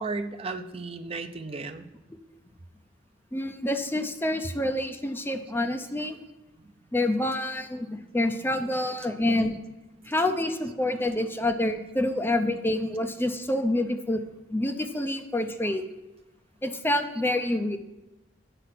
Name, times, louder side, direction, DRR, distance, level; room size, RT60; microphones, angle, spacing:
voice 1, 0.0-1.8 6.6-6.7 9.2-9.6, right 3 dB, 30° right, 7 dB, 0.6 m, -35 dB
voice 2, 3.3-6.2 6.9-9.6 10.1-14.2 14.5-15.8 16.6-17.8, left 1 dB, 10° left, 7 dB, 0.5 m, -27 dB
9.0 x 5.6 x 5.9 m, 1.0 s
head